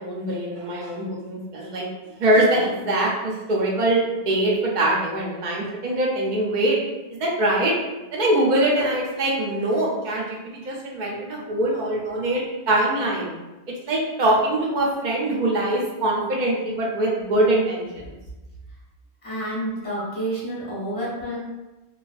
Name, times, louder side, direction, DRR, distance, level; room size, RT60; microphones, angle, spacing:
voice 1, 0.0-1.9 2.2-6.8 7.1-7.7 8.1-13.3 13.9-18.1, right 1 dB, 55° right, -3 dB, 0.6 m, -23 dB
voice 2, 19.2-21.4, right 1 dB, 30° left, -7 dB, 0.9 m, -29 dB
2.3 x 2.3 x 2.4 m, 1.0 s
omnidirectional pair, 1.1 m